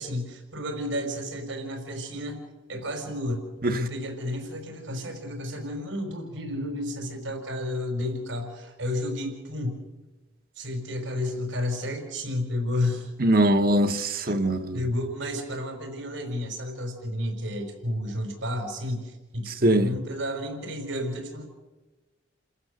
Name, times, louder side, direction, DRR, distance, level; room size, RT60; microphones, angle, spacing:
voice 1, 0.0-2.4 2.7-3.4 3.7-9.8 10.5-13.1 14.2-14.4 14.7-21.4, left 1 dB, 85° right, 5.1 m, -31 dB
voice 2, 13.2-14.8 19.6-19.9, right 1 dB, 50° right, 1.2 m, -22 dB
30.0 x 15.5 x 6.7 m
head